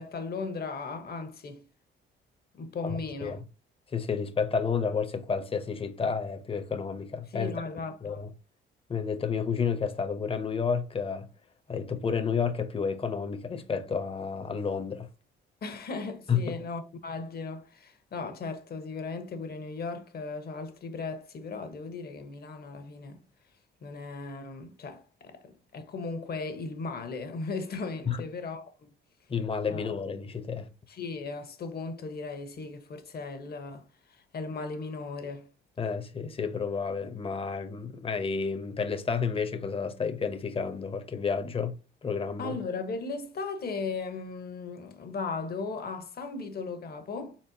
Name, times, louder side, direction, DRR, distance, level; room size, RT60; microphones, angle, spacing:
voice 1, 0.0-1.6 2.5-3.4 7.3-8.2 15.6-23.2 23.8-28.7 29.7-29.9 30.9-33.9 34.3-35.5 42.4-47.4, left 4 dB, 50° left, 1.1 m, -37 dB
voice 2, 2.8-3.4 3.9-7.5 8.0-8.3 8.9-11.3 11.7-15.1 16.3-16.6 28.1-28.2 29.3-30.7 35.8-41.8 42.0-42.5, left 5 dB, 30° left, 0.8 m, -31 dB
4.3 x 4.3 x 2.8 m
cardioid pair, 90°, 20 cm